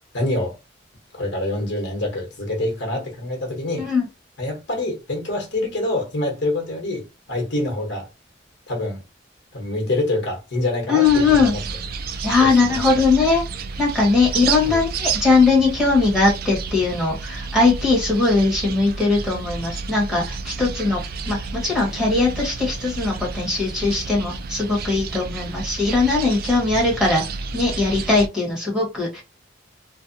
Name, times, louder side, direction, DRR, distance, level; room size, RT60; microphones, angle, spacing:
voice 1, 0.1-0.6 1.1-3.9 4.4-8.1 8.7-9.0 9.5-11.6 12.4-12.8 14.6-14.8, left 1 dB, 65° left, 1.0 m, -26 dB
voice 2, 10.9-11.5 12.2-13.4 13.8-27.2 27.5-29.2, left 3 dB, 5° right, 1.1 m, -20 dB
sound 1, 11.0-28.3, right 5 dB, 50° right, 0.3 m, -31 dB
2.5 x 2.1 x 2.5 m
head